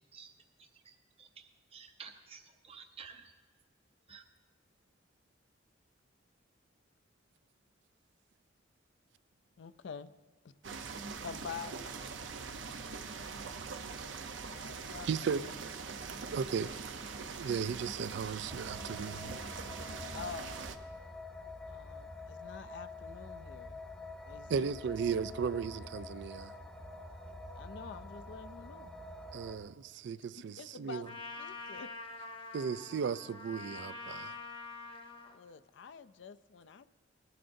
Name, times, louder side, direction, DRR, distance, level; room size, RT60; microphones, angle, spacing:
voice 1, 0.6-3.3 4.1-4.2, right 6 dB, 30° right, 0.6 m, -53 dB
voice 2, 9.6-10.1 10.4-10.5 11.2-12.0 14.4-15.1 20.1-20.6 21.7-23.8 24.3-24.7 27.5-28.9 30.3-31.1 31.4-31.9 35.3-36.9, left 6 dB, 70° left, 0.4 m, -47 dB
sound 1, 10.6-20.8, right 5 dB, 80° right, 0.7 m, -43 dB
voice 3, 15.1-15.4 16.3-16.7 17.3-19.4 24.5-26.5 29.3-31.1 32.5-34.4, right 6 dB, 65° right, 0.3 m, -35 dB
sound 2, 18.5-29.6, left 2 dB, ahead, 0.8 m, -47 dB
Trumpet, 31.0-35.4, left 3 dB, 30° left, 0.8 m, -45 dB
19.5 x 11.0 x 2.6 m
head